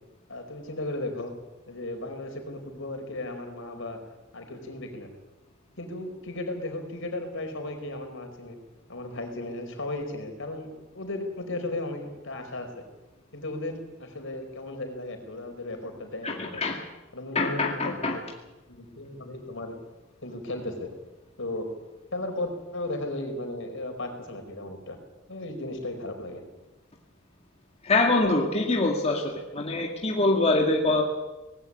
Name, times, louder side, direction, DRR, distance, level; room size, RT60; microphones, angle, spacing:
voice 1, 0.3-1.3 1.7-4.0 4.3-5.1 5.8-8.6 8.9-12.7 13.3-16.6 17.1-18.2 18.7-19.7 20.2-20.9 21.4-21.7 22.1-25.0 25.3-26.4, left 2 dB, 65° left, 5 dB, 4.7 m, -35 dB
voice 2, 16.2-16.8 17.4-18.2 27.8-31.0, left 2 dB, 30° left, 1 dB, 2.1 m, -24 dB
19.5 x 16.0 x 9.9 m, 1.1 s
head